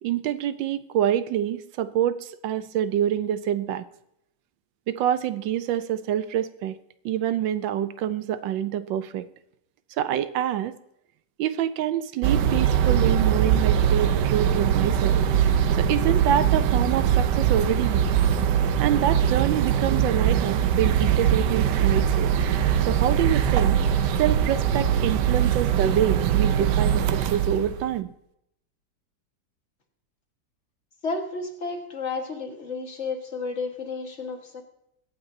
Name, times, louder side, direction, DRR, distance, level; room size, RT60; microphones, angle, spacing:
voice 1, 0.0-3.8 4.9-6.8 7.0-9.3 10.0-10.7 11.4-15.3 15.8-18.0 18.8-22.3 22.8-23.8 24.2-28.1, right 10 dB, 85° right, 13 dB, 1.4 m, -26 dB
sound 1, 12.2-27.9, right 9 dB, 70° right, 1.3 m, -22 dB
voice 2, 31.0-34.6, left 3 dB, 40° left, 4 dB, 1.9 m, -32 dB
22.5 x 8.9 x 2.8 m, 0.80 s
omnidirectional pair, 2.0 m